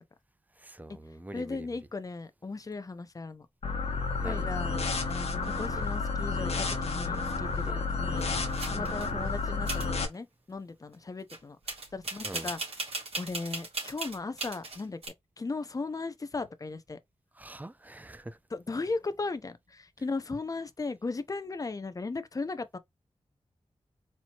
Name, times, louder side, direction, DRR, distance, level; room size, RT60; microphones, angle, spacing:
voice 1, 0.6-1.7 4.2-4.5 7.6-7.9 8.7-8.9 12.2-12.5 17.4-18.4, right 1 dB, 15° right, 0.5 m, -43 dB
voice 2, 1.3-3.5 4.2-4.8 5.1-8.4 8.7-11.6 11.9-15.0 15.4-17.0 18.5-22.8, left 3 dB, 35° left, 0.6 m, -37 dB
sound 1, 3.6-10.0, left 4 dB, 70° left, 1.0 m, -31 dB
sound 2, 8.2-9.1 9.7-9.9 11.3-11.4 11.7-15.1, right 2 dB, 70° right, 2.2 m, -37 dB
4.4 x 2.8 x 2.8 m
wide cardioid pair, 85°, 11 cm